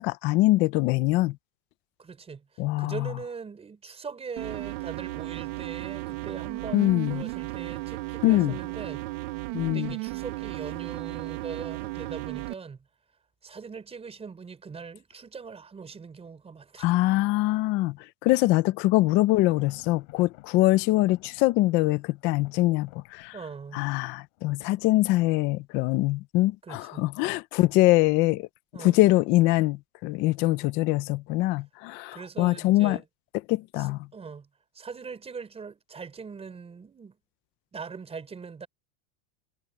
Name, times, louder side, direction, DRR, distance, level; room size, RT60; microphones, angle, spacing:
voice 1, 0.0-1.4 2.6-3.1 6.7-7.2 8.2-8.6 9.5-9.9 16.8-18.0 18.2-23.3 23.7-28.5 28.8-33.0 33.5-34.1, left 18 dB, 30° left, 0.4 m, -23 dB
voice 2, 2.0-9.1 9.7-12.9 13.4-17.0 23.3-23.9 26.6-27.1 28.7-29.0 32.1-33.0 33.8-34.5 34.7-37.2 37.7-38.7, right 5 dB, 15° right, 4.5 m, -41 dB
sound 1, 4.4-12.5, right 21 dB, 60° right, 1.0 m, -35 dB
Thunder, 19.4-25.2, left 25 dB, 65° left, 6.7 m, -55 dB
supercardioid pair, 160°, 41 cm